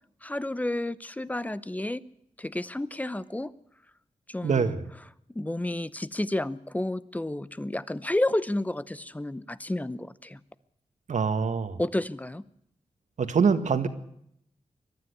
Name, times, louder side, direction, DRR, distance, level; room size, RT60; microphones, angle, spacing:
voice 1, 0.2-2.0 2.4-3.5 4.3-4.8 5.3-10.4 11.8-12.4, left 1 dB, 10° left, 16 dB, 0.8 m, -31 dB
voice 2, 4.4-4.9 11.1-11.8 13.2-13.9, right 5 dB, 75° right, 10 dB, 1.8 m, -24 dB
22.0 x 13.0 x 9.7 m, 0.74 s
wide cardioid pair, 125°, 12 cm